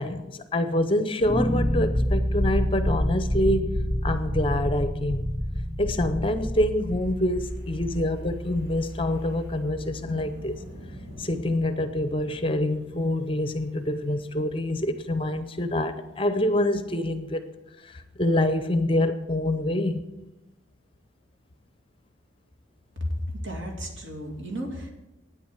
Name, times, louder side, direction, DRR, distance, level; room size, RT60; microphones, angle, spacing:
voice 1, 0.0-5.3 5.8-10.5 11.2-17.5 17.8-20.1, left 1 dB, 25° left, 0.6 m, -26 dB
sound 1, 1.2-10.3, equal, 10° left, 1.8 m, -28 dB
Wind, 6.7-17.0, equal, 50° right, 4.2 m, -48 dB
voice 2, 23.4-24.9, equal, 70° right, 2.6 m, -33 dB
9.7 x 8.5 x 8.1 m
head